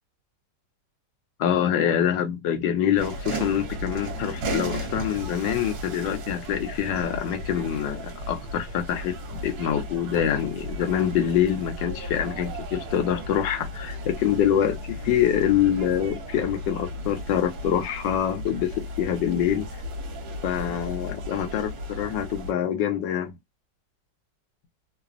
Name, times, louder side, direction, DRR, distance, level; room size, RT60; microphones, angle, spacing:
voice 1, 1.4-9.2 9.4-19.6 20.4-23.3, left 9 dB, 80° left, 1.4 m, -25 dB
sound 1, 3.0-22.5, equal, 65° right, 1.3 m, -35 dB
3.2 x 2.0 x 2.4 m
omnidirectional pair, 2.0 m